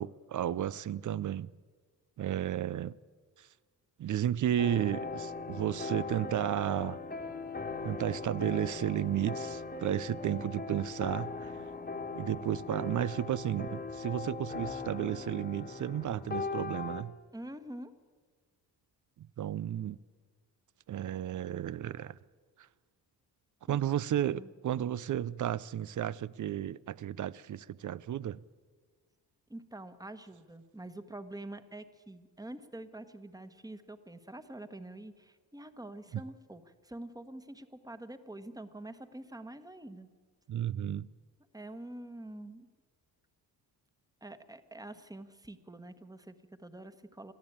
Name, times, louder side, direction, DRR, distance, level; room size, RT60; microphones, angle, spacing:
voice 1, 0.0-1.5 2.2-3.0 3.4-3.5 4.0-7.0 7.8-11.5 12.1-17.1 19.2-20.0 20.9-22.2 23.7-28.4 36.1-36.2 40.5-41.1, right 11 dB, 50° right, 0.6 m, -33 dB
sound 1, 4.6-17.0, left 4 dB, 25° left, 1.5 m, -39 dB
voice 2, 17.3-17.9 23.7-23.8 24.3-24.5 29.5-40.1 41.5-42.7 44.2-47.3, right 1 dB, 10° right, 1.3 m, -46 dB
22.0 x 14.0 x 8.7 m
cardioid pair, 85°, 40 cm